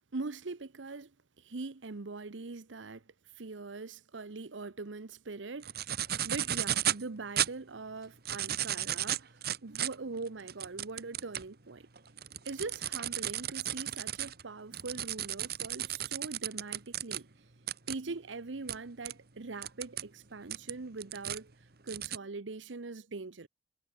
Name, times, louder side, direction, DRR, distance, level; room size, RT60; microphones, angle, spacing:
voice 1, 0.1-6.0 6.2-11.9 12.4-17.3 17.9-23.5, right 3 dB, 85° right, 0.9 m, -42 dB
sound 1, 5.6-7.0 7.4-7.5 8.1-11.5 12.0-17.2 17.7-17.9 18.7-18.8 19.0-19.1 19.6-20.0 20.5-21.4 21.9-22.2, right 11 dB, 55° right, 1.6 m, -34 dB
head